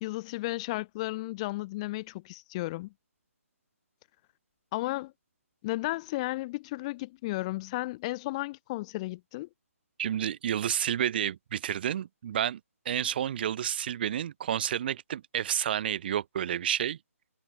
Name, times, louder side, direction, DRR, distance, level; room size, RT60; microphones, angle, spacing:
voice 1, 0.0-2.9 4.7-5.1 5.6-9.5, left 20 dB, 25° left, 1.4 m, -34 dB
voice 2, 10.0-12.6 12.8-17.0, right 10 dB, 40° right, 3.3 m, -30 dB
hypercardioid pair, 155°, 8 cm